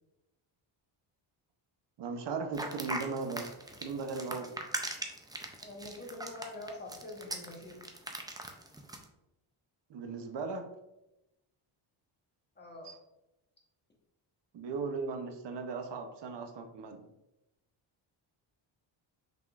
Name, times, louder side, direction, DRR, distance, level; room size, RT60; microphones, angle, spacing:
voice 1, 2.0-3.5 3.8-4.5 9.9-10.6 12.8-13.0 14.5-17.0, right 4 dB, 55° right, 5 dB, 0.8 m, -37 dB
sound 1, 2.5-9.0, right 1 dB, 10° right, 0.4 m, -40 dB
voice 2, 5.6-7.9 12.6-12.9, left 2 dB, 20° left, -1 dB, 1.1 m, -45 dB
5.8 x 3.6 x 2.4 m, 0.92 s
cardioid pair, 110°, 49 cm